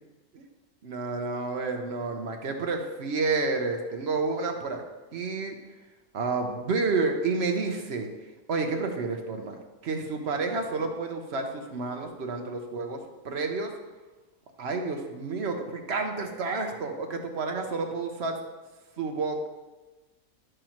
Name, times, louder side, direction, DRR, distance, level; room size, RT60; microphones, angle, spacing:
voice 1, 0.8-4.8 5.1-5.5 6.1-8.1 8.5-9.5 9.8-13.0 13.2-13.7 14.6-18.4 19.0-19.5, right 3 dB, 50° right, 3 dB, 1.0 m, -30 dB
10.5 x 6.4 x 3.0 m, 1.2 s
omnidirectional pair, 1.6 m